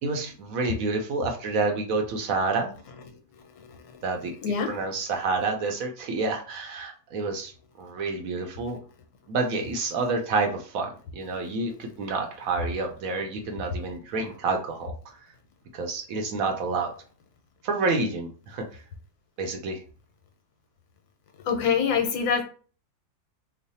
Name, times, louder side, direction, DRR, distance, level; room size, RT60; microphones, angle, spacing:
voice 1, 0.0-2.7 4.0-4.3 4.7-7.5 7.8-8.8 9.3-15.2 15.7-16.9 17.6-18.6 19.4-19.8, right 3 dB, 70° right, 3 dB, 1.1 m, -28 dB
voice 2, 3.6-4.0 4.4-4.7 21.5-22.4, left 6 dB, 85° left, 4 dB, 1.3 m, -25 dB
3.1 x 2.1 x 4.0 m, 0.39 s
omnidirectional pair, 1.6 m